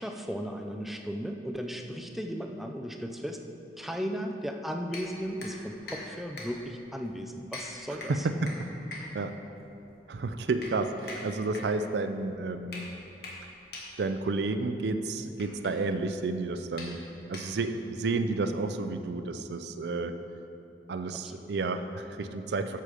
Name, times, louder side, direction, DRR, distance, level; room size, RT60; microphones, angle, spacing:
voice 1, 0.0-3.4 3.8-8.3 21.1-21.5, equal, ahead, 3 dB, 0.4 m, -36 dB
sound 1, 4.9-17.9, left 2 dB, 60° left, 1.5 m, -45 dB
voice 2, 8.1-8.6 9.1-9.3 10.1-12.8 14.0-17.0 17.3-20.2 20.9-22.8, right 3 dB, 70° right, 9 dB, 0.4 m, -31 dB
8.4 x 6.8 x 5.0 m, 2.8 s
head